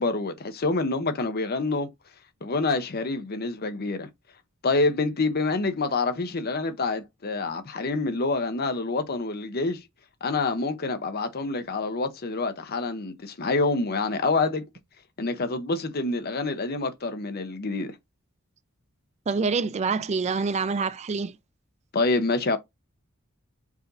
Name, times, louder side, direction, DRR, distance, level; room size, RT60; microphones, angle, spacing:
voice 1, 0.0-1.9 2.4-4.1 4.6-9.8 10.2-14.6 15.2-18.0 21.9-22.6, left 3 dB, 50° left, 0.7 m, -27 dB
voice 2, 19.3-21.4, right 4 dB, 30° right, 0.3 m, -26 dB
4.9 x 2.6 x 3.9 m
head